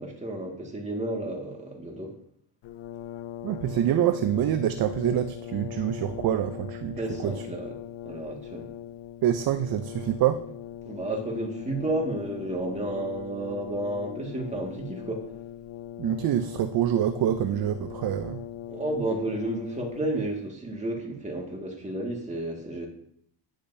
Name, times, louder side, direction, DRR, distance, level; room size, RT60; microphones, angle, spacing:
voice 1, 0.0-2.1 6.9-7.8 8.0-8.7 10.9-15.3 18.7-22.9, right 1 dB, 15° right, 0 dB, 2.0 m, -32 dB
Brass instrument, 2.6-20.4, left 11 dB, 65° left, 0.7 m, -40 dB
voice 2, 3.4-7.3 9.2-10.4 16.0-18.4, right 11 dB, 50° right, 9 dB, 0.6 m, -26 dB
10.5 x 5.0 x 2.8 m, 0.70 s
supercardioid pair, 80°, 46 cm